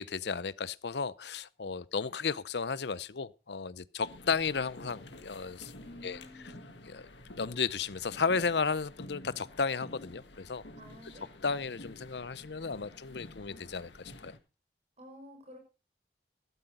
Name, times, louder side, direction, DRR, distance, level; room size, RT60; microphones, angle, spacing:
voice 1, 0.0-5.7 6.0-6.2 6.9-7.0 7.4-10.6 11.4-14.3, left 5 dB, 70° left, 0.7 m, -34 dB
sound 1, 4.0-14.4, left 1 dB, 85° left, 1.9 m, -50 dB
voice 2, 5.8-6.8 10.8-11.3 15.0-15.6, equal, 35° right, 5.3 m, -51 dB
14.0 x 13.0 x 3.9 m
head